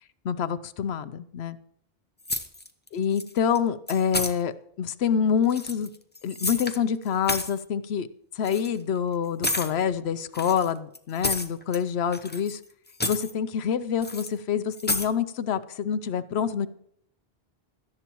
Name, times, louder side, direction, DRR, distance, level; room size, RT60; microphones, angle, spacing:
voice 1, 0.0-1.6 2.9-5.9 6.2-8.1 8.3-12.6 13.0-16.7, left 7 dB, 90° left, 13 dB, 0.9 m, -27 dB
sound 1, 2.2-2.9 3.1-3.6 3.9-4.3 5.4-6.8 7.1-7.6 8.4-8.7 9.4-9.7 10.3-11.8 12.1-12.6 12.9-13.3 14.0-14.3 14.7-15.1, left 2 dB, 10° left, 0.7 m, -30 dB
17.0 x 13.0 x 3.0 m, 0.68 s
omnidirectional pair, 1.0 m